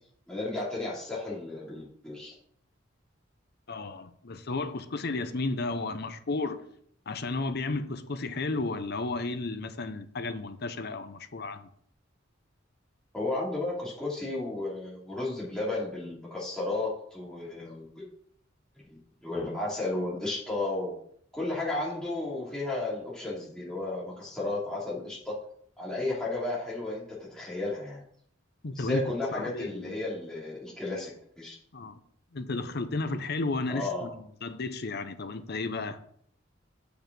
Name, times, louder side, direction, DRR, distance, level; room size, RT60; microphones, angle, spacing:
voice 1, 0.3-2.3 13.1-18.1 18.9-20.9 21.3-25.3 25.8-28.0 28.7-31.6 33.7-34.1, left 2 dB, 5° left, 2.8 m, -33 dB
voice 2, 3.7-6.6 7.1-11.7 28.6-29.0 29.3-30.0 31.7-32.0 32.3-34.1 34.4-36.0, left 3 dB, 55° left, 0.8 m, -33 dB
7.0 x 5.2 x 6.1 m
head